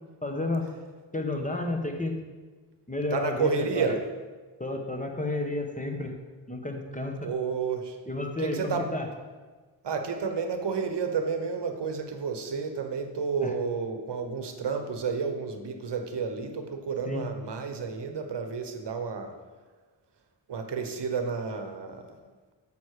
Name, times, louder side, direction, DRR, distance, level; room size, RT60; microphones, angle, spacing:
voice 1, 0.2-0.7 1.1-2.2 2.9-4.0 4.6-6.2 6.5-7.3 8.1-9.1 13.4-13.5 17.1-17.2, left 2 dB, 15° left, 4 dB, 1.1 m, -31 dB
voice 2, 3.1-4.0 7.2-8.0 8.4-8.9 9.8-19.3 20.5-22.3, right 5 dB, 60° right, 6 dB, 1.0 m, -31 dB
7.2 x 6.1 x 4.8 m, 1.3 s
cardioid pair, 55°, 45 cm